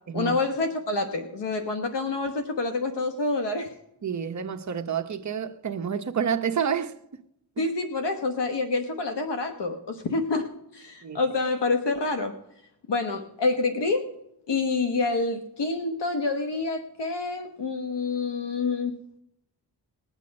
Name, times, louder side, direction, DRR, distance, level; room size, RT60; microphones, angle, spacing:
voice 1, 0.1-3.7 7.6-10.5 10.7-12.3 12.9-14.0 14.5-18.9, left 3 dB, 75° left, 1.2 m, -27 dB
voice 2, 4.0-6.9 7.6-7.7 11.0-11.2, right 7 dB, 45° right, 0.9 m, -29 dB
20.0 x 8.3 x 5.3 m
wide cardioid pair, 95°, 41 cm